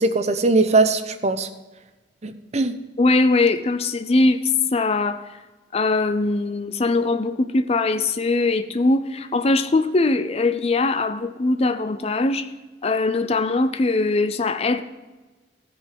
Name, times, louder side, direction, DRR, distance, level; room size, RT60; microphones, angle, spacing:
voice 1, 0.0-1.5 2.2-2.8, right 3 dB, 35° right, 9 dB, 0.8 m, -20 dB
voice 2, 3.0-5.2 5.7-12.5 12.8-14.8, left 3 dB, 35° left, 10 dB, 0.5 m, -21 dB
14.5 x 5.4 x 7.4 m, 1.2 s
head